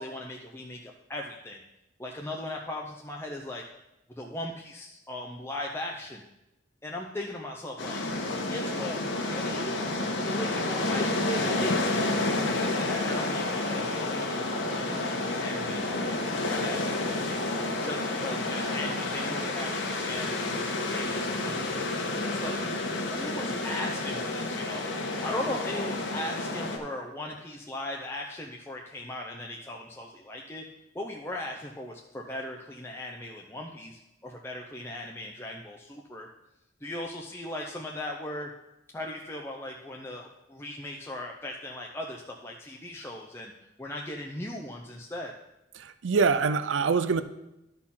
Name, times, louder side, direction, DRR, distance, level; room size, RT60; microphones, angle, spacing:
voice 1, 0.0-1.6 2.0-3.7 4.2-6.2 6.8-8.0 8.5-9.8 10.2-17.4 17.8-21.7 22.1-22.6 23.0-24.9 25.2-30.7 30.9-36.3 36.8-38.5 38.9-43.5 43.8-45.3, left 1 dB, 15° left, 0 dB, 0.6 m, -38 dB
sound 1, 7.8-26.8, left 2 dB, 85° left, 1.4 m, -30 dB
voice 2, 45.7-47.2, right 5 dB, 85° right, 12 dB, 0.5 m, -25 dB
11.5 x 4.2 x 5.7 m, 0.90 s
head